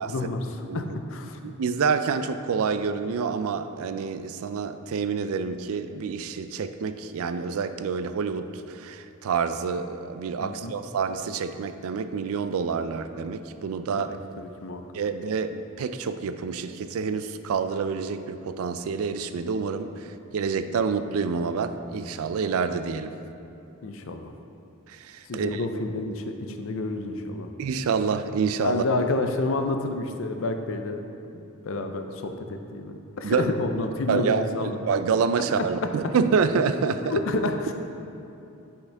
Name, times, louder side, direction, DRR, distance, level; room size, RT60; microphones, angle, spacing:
voice 1, 0.0-1.4 10.4-10.7 14.0-14.1 14.4-14.8 23.8-24.3 25.3-27.5 28.6-31.0 31.3-34.9 35.6-35.7 37.1-37.7, left 2 dB, 65° left, 6 dB, 0.5 m, -29 dB
voice 2, 1.4-14.2 14.9-23.1 24.9-25.6 27.6-28.9 33.2-33.5 34.1-37.2, right 5 dB, 75° right, 11 dB, 0.4 m, -27 dB
8.1 x 5.7 x 3.4 m, 2.9 s
head